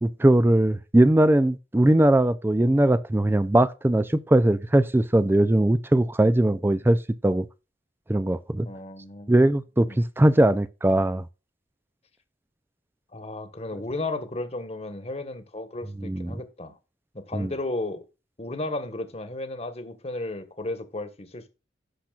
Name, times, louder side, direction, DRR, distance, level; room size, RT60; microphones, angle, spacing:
voice 1, 0.0-7.0 7.2-7.5 8.1-8.7 9.3-11.2 16.0-16.3 17.3-17.5, right 1 dB, 15° right, 0.4 m, -20 dB
voice 2, 8.6-9.3 9.8-10.0 13.1-16.7 17.1-18.0 18.4-21.5, left 2 dB, 35° left, 1.4 m, -34 dB
16.5 x 5.9 x 2.4 m
head